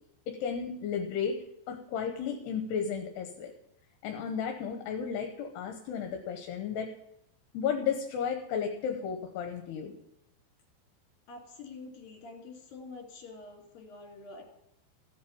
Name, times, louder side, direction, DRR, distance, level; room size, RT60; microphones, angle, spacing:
voice 1, 0.3-3.5 4.0-6.9 7.5-9.9, left 7 dB, 80° left, 4 dB, 3.1 m, -33 dB
voice 2, 11.3-14.4, left 3 dB, 60° left, 1 dB, 4.5 m, -47 dB
16.0 x 8.8 x 7.1 m, 0.78 s
omnidirectional pair, 4.8 m